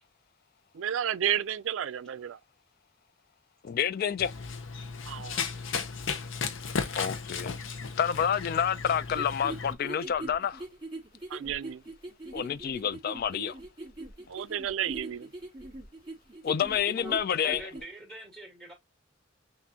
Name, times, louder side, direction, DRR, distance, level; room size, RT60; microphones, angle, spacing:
voice 1, 0.7-2.4 5.1-5.5 11.3-11.8 14.3-15.3, right 9 dB, 85° right, 0.4 m, -32 dB
voice 2, 3.6-4.3 6.9-7.6 8.0-10.6 12.3-13.6 16.4-17.6, left 8 dB, 50° left, 0.3 m, -28 dB
Run, 4.2-9.7, left 5 dB, 90° left, 0.7 m, -35 dB
sound 1, 9.1-17.8, right 2 dB, 25° right, 2.0 m, -42 dB
voice 3, 16.8-18.7, right 1 dB, 5° left, 2.2 m, -44 dB
5.9 x 2.5 x 2.8 m
head